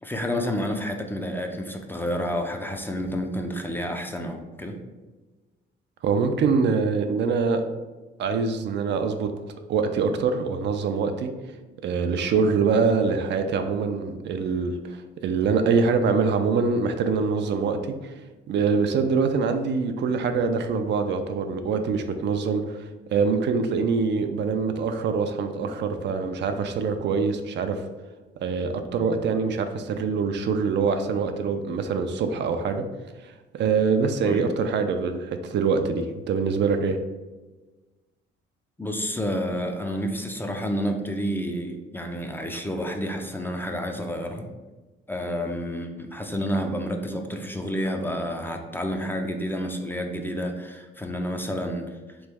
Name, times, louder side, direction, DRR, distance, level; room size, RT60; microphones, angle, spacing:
voice 1, 0.0-4.8 29.0-29.1 34.2-34.4 38.8-44.5 45.1-52.0, equal, 10° left, 3 dB, 0.4 m, -29 dB
voice 2, 6.0-7.6 8.2-9.3 9.7-11.3 11.8-18.1 18.5-27.8 28.4-32.8 33.2-37.0, right 5 dB, 60° right, 7 dB, 0.4 m, -24 dB
3.2 x 3.1 x 3.4 m, 1.2 s
cardioid pair, 90°, 20 cm